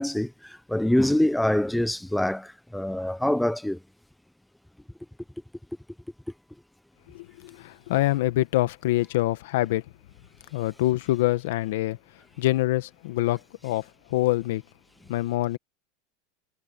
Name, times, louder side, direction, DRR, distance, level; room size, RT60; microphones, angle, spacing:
voice 1, 0.0-3.8, left 1 dB, 5° left, 0.4 m, -25 dB
voice 2, 7.1-9.8 10.5-14.6 15.1-15.6, left 16 dB, 75° left, 1.4 m, -26 dB
supercardioid pair, 140°, 0 cm